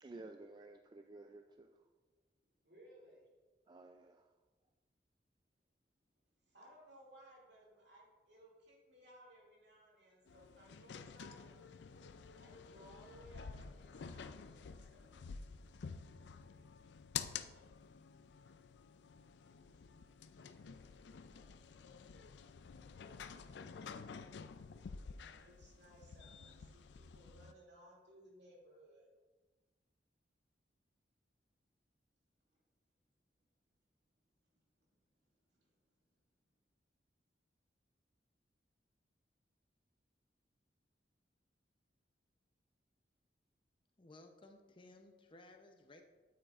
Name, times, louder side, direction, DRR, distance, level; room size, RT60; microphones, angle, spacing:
voice 1, 0.0-1.7 3.7-4.3, right 2 dB, 25° right, 5 dB, 0.3 m, -53 dB
voice 2, 2.6-3.3 6.5-11.6 12.4-15.2 18.4-22.6 25.2-29.1 34.8-34.9 35.5-35.7, right 1 dB, 70° right, -2 dB, 2.6 m, -63 dB
sound 1, 10.3-27.5, left 6 dB, 75° left, 0.4 m, -50 dB
voice 3, 44.0-46.0, left 2 dB, 30° left, 5 dB, 0.7 m, -59 dB
9.3 x 8.8 x 2.5 m, 1.3 s
head